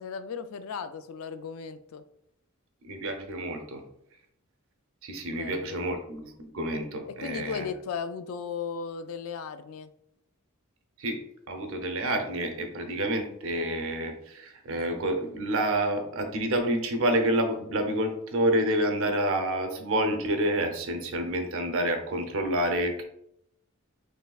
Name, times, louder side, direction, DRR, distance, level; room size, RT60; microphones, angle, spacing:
voice 1, 0.0-2.0 5.3-5.8 7.2-9.9, left 6 dB, 70° left, 11 dB, 0.4 m, -36 dB
voice 2, 2.8-3.8 5.0-7.6 11.0-11.2 11.5-23.0, right 1 dB, 65° right, 5 dB, 0.8 m, -28 dB
5.3 x 3.2 x 2.4 m, 0.76 s
head